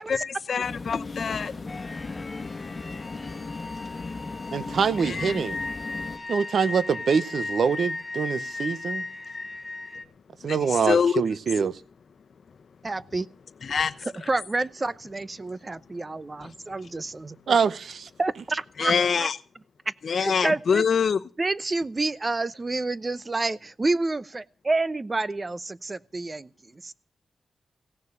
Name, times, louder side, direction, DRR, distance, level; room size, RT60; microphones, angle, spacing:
voice 1, 0.0-1.5 5.0-5.4 10.5-11.1 13.6-13.9 16.4-16.5 18.8-19.4 20.0-21.2, left 6 dB, 70° left, 0.9 m, -25 dB
sound 1, 0.6-6.2, left 3 dB, 45° left, 1.5 m, -36 dB
sound 2, 1.7-10.0, left 2 dB, 25° left, 2.3 m, -36 dB
voice 2, 4.5-5.6 6.3-9.0 10.4-11.8 17.5-18.1, right 6 dB, 75° right, 0.8 m, -24 dB
voice 3, 12.8-13.3 14.3-17.4 18.2-19.3 20.2-20.9 21.4-24.2 24.7-26.9, right 2 dB, 35° right, 0.8 m, -29 dB
17.0 x 6.7 x 9.8 m
cardioid pair, 60°, 0 cm